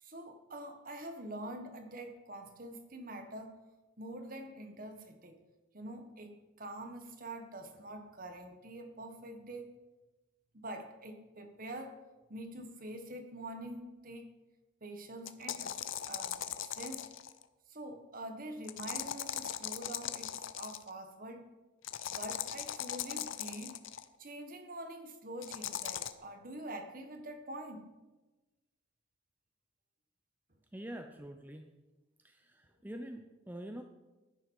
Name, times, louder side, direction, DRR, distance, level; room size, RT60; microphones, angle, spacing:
voice 1, 0.0-3.5 4.0-5.4 5.7-9.7 10.5-12.0 12.3-14.3 14.8-15.8 16.0-17.0 17.7-21.5 22.1-23.8 24.2-27.9, right 1 dB, 45° right, 6 dB, 1.5 m, -45 dB
sound 1, 15.3-17.4 18.7-20.9 21.8-24.0 25.4-26.1, left 10 dB, 80° left, 0.7 m, -39 dB
voice 2, 30.7-31.7 32.2-33.8, right 1 dB, 10° right, 5 dB, 0.6 m, -45 dB
15.0 x 9.9 x 4.8 m, 1.2 s
head